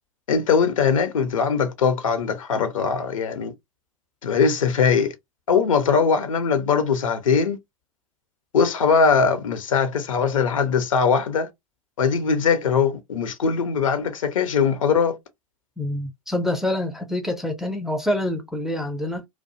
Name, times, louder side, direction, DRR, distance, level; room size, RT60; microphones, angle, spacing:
voice 1, 0.3-3.5 4.2-5.1 5.5-7.6 8.5-11.5 12.0-15.2, left 6 dB, 65° left, 0.7 m, -21 dB
voice 2, 15.8-19.3, left 1 dB, ahead, 0.4 m, -26 dB
2.3 x 2.2 x 2.7 m
figure-of-eight pair, 100°, 18 cm